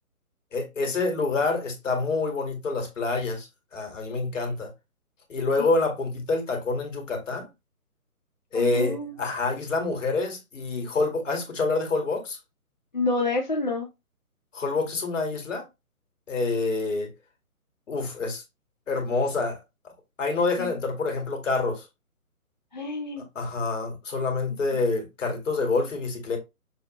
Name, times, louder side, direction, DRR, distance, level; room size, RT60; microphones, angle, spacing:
voice 1, 0.5-4.7 5.3-7.5 8.5-12.4 14.5-15.6 16.3-17.1 17.9-18.4 18.9-19.6 20.2-21.9 23.4-26.4, left 3 dB, 55° left, 1.9 m, -27 dB
voice 2, 8.5-9.1 12.9-13.9 20.6-20.7 22.7-23.2 24.7-24.8, left 3 dB, 30° left, 0.5 m, -28 dB
6.3 x 2.6 x 3.0 m
figure-of-eight pair, 145°, 45 cm